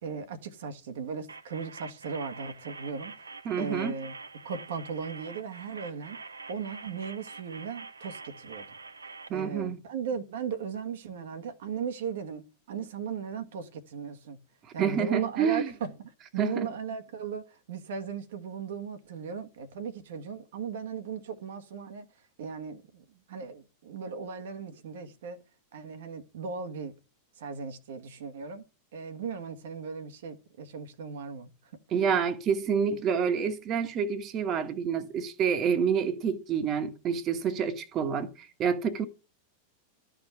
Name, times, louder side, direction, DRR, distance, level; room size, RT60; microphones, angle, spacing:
voice 1, 0.0-4.1 4.4-6.2 6.5-8.6 9.3-14.4 14.7-22.0 22.4-25.4 25.7-26.9 27.4-28.6 28.9-31.5, right 6 dB, 60° right, 1.4 m, -37 dB
sound 1, 1.3-9.3, right 4 dB, 80° right, 0.8 m, -45 dB
voice 2, 3.4-3.9 9.3-9.8 14.8-15.7 16.4-16.7 31.9-39.0, right 7 dB, 30° right, 1.5 m, -28 dB
12.5 x 5.1 x 8.1 m
figure-of-eight pair, 90°, 0 cm